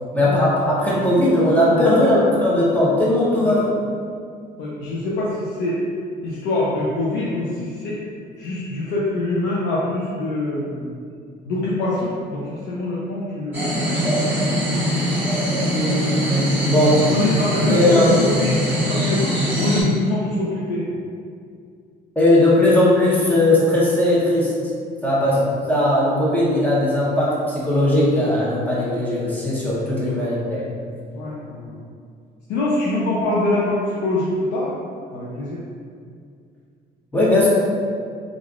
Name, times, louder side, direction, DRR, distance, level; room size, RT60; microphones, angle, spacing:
voice 1, 0.1-3.6 15.7-17.0 17.7-18.1 22.2-24.5 25.0-25.4 25.7-30.6 37.1-37.5, left 1 dB, 10° left, -7 dB, 0.8 m, -18 dB
voice 2, 1.7-2.2 3.4-3.6 4.6-5.8 6.2-8.0 8.4-10.9 11.5-14.0 17.1-20.8 25.1-25.4 30.1-30.2 31.1-31.8 32.5-34.7 35.1-35.6, left 2 dB, 90° left, -7 dB, 0.5 m, -24 dB
sound 1, 13.5-19.8, equal, 10° right, 1.2 m, -22 dB
3.3 x 2.4 x 2.3 m, 2.2 s
cardioid pair, 110°, 17 cm